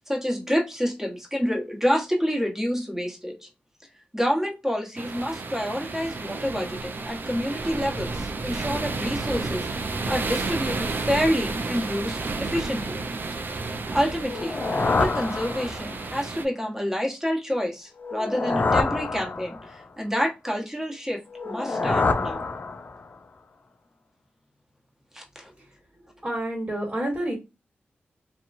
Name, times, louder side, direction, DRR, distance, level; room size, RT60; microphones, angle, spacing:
voice 1, 0.1-3.5 4.1-13.0 13.9-22.5 25.1-25.5, equal, 10° right, 1.1 m, -28 dB
sound 1, 5.0-16.5, right 3 dB, 55° right, 0.4 m, -31 dB
sound 2, 14.2-16.1 18.0-19.8 21.3-23.1, left 3 dB, 45° left, 0.4 m, -26 dB
voice 2, 26.2-27.3, right 1 dB, 30° right, 1.3 m, -28 dB
2.8 x 2.2 x 2.5 m
cardioid pair, 50°, 4 cm